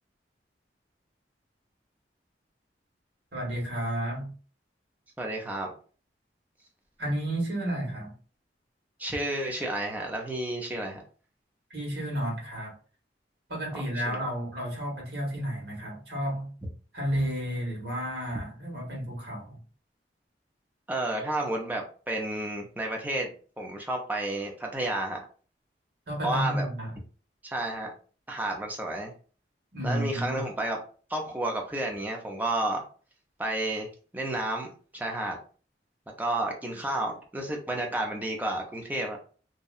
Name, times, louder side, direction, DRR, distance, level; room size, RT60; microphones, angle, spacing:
voice 1, 3.3-4.3 7.0-8.1 11.7-12.7 13.5-16.5 16.9-19.6 26.1-26.9 29.7-30.4, right 1 dB, 70° right, 1.3 m, -31 dB
voice 2, 5.2-5.7 9.0-11.0 13.7-14.2 20.9-23.3 23.6-25.2 26.2-26.7 27.4-27.9 28.3-29.1 29.8-30.8 31.1-32.8 33.4-35.4 36.2-39.2, right 1 dB, 10° right, 0.5 m, -31 dB
2.7 x 2.1 x 2.4 m
head